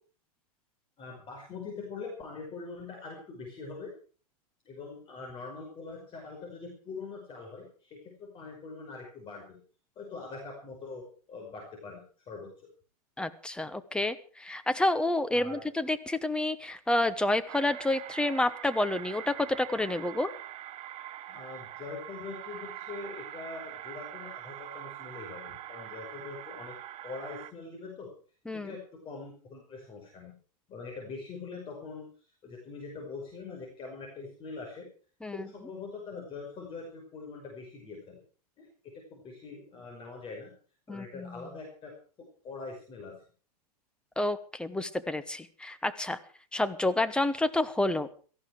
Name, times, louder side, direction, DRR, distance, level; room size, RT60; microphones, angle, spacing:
voice 1, 1.0-3.9 4.7-9.6 10.0-12.0 12.3-12.5 15.3-15.6 21.3-26.8 27.0-28.1 28.5-30.4 30.7-32.1 32.4-34.9 35.3-38.2 38.6-38.7 38.9-40.5 40.9-41.9 42.4-43.2, left 4 dB, 25° left, 1 dB, 5.3 m, -43 dB
voice 2, 13.2-20.3 28.5-28.7 35.2-35.5 40.9-41.3 44.2-46.2 46.5-48.1, left 1 dB, 5° left, 11 dB, 1.0 m, -29 dB
sound 1, 17.5-27.5, right 13 dB, 30° right, 1.2 m, -44 dB
17.5 x 14.5 x 4.8 m, 0.40 s
hypercardioid pair, 125°, 20 cm